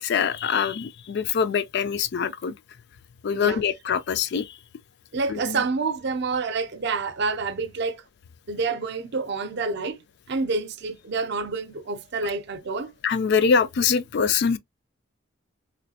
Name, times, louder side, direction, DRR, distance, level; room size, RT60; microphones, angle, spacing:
voice 1, 0.0-2.5 3.2-4.5 5.3-5.6 13.0-14.6, left 6 dB, 55° left, 0.4 m, -24 dB
voice 2, 3.3-3.7 5.1-8.0 8.5-10.0 10.3-12.9, right 4 dB, 55° right, 0.5 m, -28 dB
3.1 x 3.0 x 2.8 m
head